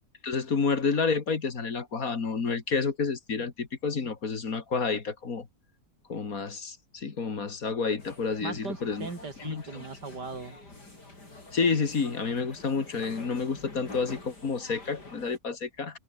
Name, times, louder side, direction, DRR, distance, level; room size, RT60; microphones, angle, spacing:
voice 1, 0.2-5.5 6.1-9.1 9.4-9.8 11.5-16.0, left 5 dB, 55° left, 2.4 m, -29 dB
sound 1, 8.0-15.4, left 2 dB, 70° left, 7.1 m, -47 dB
voice 2, 8.4-10.6, right 4 dB, 75° right, 4.0 m, -39 dB
omnidirectional pair, 1.8 m